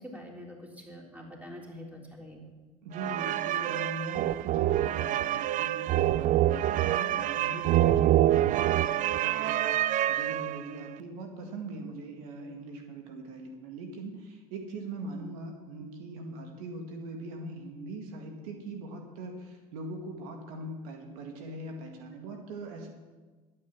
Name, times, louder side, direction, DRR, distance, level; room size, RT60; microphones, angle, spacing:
voice 1, 0.0-2.5, equal, 10° right, -1 dB, 3.5 m, -45 dB
voice 2, 2.8-9.8 10.1-22.9, right 2 dB, 80° right, 3 dB, 2.0 m, -41 dB
sound 1, 2.9-10.8, right 13 dB, 45° right, 0.4 m, -26 dB
11.5 x 8.7 x 7.3 m, 1.3 s
supercardioid pair, 90°, 19 cm